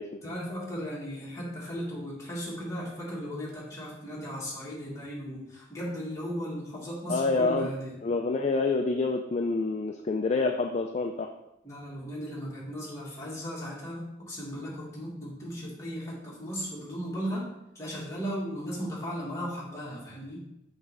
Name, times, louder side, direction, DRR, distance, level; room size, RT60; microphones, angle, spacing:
voice 1, 0.2-8.0 11.6-20.4, equal, 15° left, -5 dB, 1.7 m, -36 dB
voice 2, 7.1-7.7 8.0-11.3, left 3 dB, 35° left, 3 dB, 0.3 m, -27 dB
6.0 x 3.2 x 5.3 m, 0.88 s
head